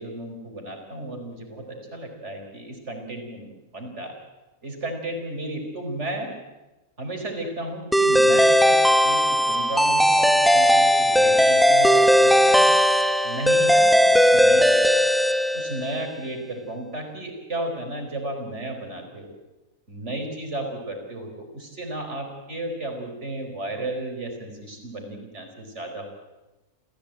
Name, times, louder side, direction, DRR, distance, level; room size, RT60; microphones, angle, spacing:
voice 1, 0.0-4.1 4.6-6.3 7.0-12.7 13.2-15.1 15.5-19.4 19.9-26.1, right 1 dB, 60° right, 3 dB, 4.8 m, -33 dB
sound 1, 7.9-16.0, equal, ahead, 0.6 m, -18 dB
28.0 x 15.5 x 8.9 m, 1.1 s
omnidirectional pair, 1.4 m